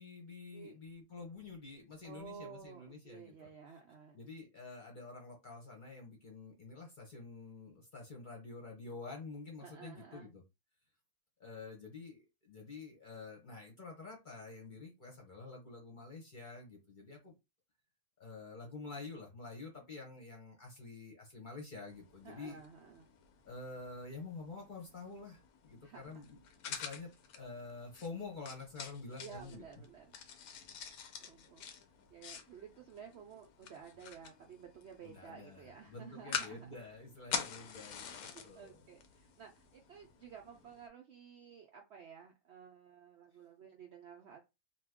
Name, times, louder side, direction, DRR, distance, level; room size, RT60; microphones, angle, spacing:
voice 1, 0.0-3.5 4.1-10.4 11.4-17.3 18.2-22.6 23.4-26.4 26.7-29.6 35.0-38.8, left 3 dB, 40° left, 0 dB, 0.8 m, -48 dB
voice 2, 2.0-4.2 9.6-10.3 22.2-23.1 25.8-26.2 29.2-30.2 31.2-31.6 32.1-36.7 37.4-37.5 38.2-44.4, right 7 dB, 65° right, 2 dB, 0.6 m, -53 dB
sound 1, 21.9-40.9, left 7 dB, 90° left, 1.1 m, -47 dB
2.8 x 2.3 x 3.5 m, 0.24 s
omnidirectional pair, 1.5 m